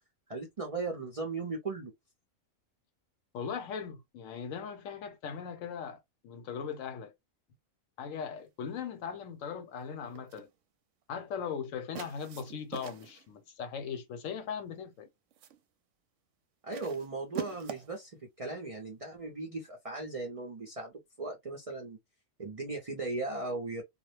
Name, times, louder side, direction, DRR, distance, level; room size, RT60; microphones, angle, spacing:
voice 1, 0.3-1.9 16.6-22.0 22.4-23.8, right 3 dB, 45° right, 0.4 m, -37 dB
voice 2, 3.3-7.1 8.0-10.5 11.1-15.1, left 7 dB, 70° left, 1.0 m, -39 dB
sound 1, 10.1-10.5 11.9-13.3 14.3-14.7 15.1-15.6 16.7-18.0, right 10 dB, 70° right, 0.9 m, -44 dB
2.4 x 2.0 x 3.1 m
omnidirectional pair, 1.4 m